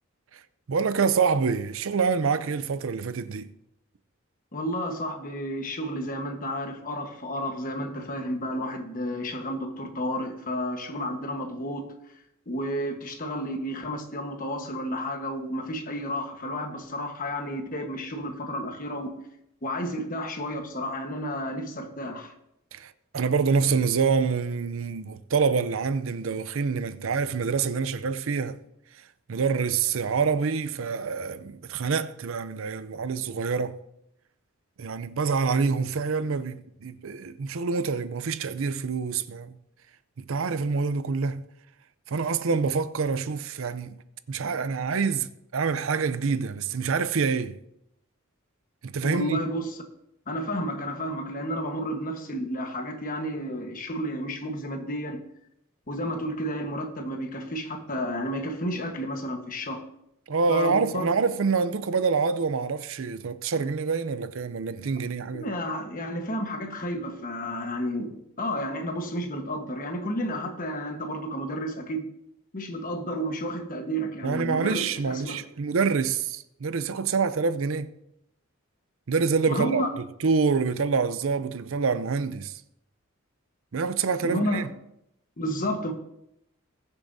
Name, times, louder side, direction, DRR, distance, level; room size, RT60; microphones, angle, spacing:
voice 1, 0.7-3.5 22.7-28.6 29.3-33.8 34.8-39.6 40.2-41.4 42.1-44.0 44.3-47.6 48.8-49.4 60.3-65.5 74.2-77.9 79.1-79.8 80.2-82.6 83.7-84.7, right 5 dB, 65° right, 0.5 m, -26 dB
voice 2, 4.5-11.9 12.5-19.1 19.6-22.3 49.0-49.8 50.3-55.2 55.9-59.8 60.5-61.1 65.3-72.1 72.5-75.4 79.5-79.9 84.2-84.7 85.4-85.9, equal, 40° left, 1.2 m, -31 dB
20.5 x 7.0 x 2.7 m
head